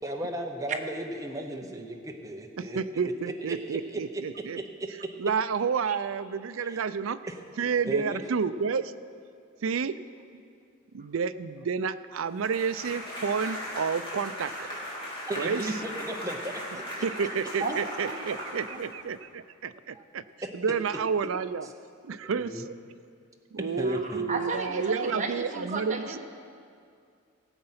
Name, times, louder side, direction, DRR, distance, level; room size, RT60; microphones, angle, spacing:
voice 1, 0.0-3.1 6.7-6.8 7.9-8.2 15.3-17.0 19.9-20.0 22.2-22.6 23.8-24.2, right 1 dB, 15° right, 2 dB, 0.8 m, -35 dB
voice 2, 2.6-4.6 5.2-7.2 7.6-8.9 9.6-10.0 10.9-14.7 15.4-15.7 17.0-20.2 20.5-21.7 22.0-22.7 23.5-26.2, right 6 dB, 70° right, 12 dB, 0.4 m, -30 dB
sound 1, 12.4-19.2, equal, 25° left, 3.2 m, -38 dB
voice 3, 17.6-18.2 18.7-18.8 23.8-26.2, right 3 dB, 35° right, 2 dB, 1.2 m, -34 dB
17.5 x 7.7 x 5.7 m, 2.3 s
head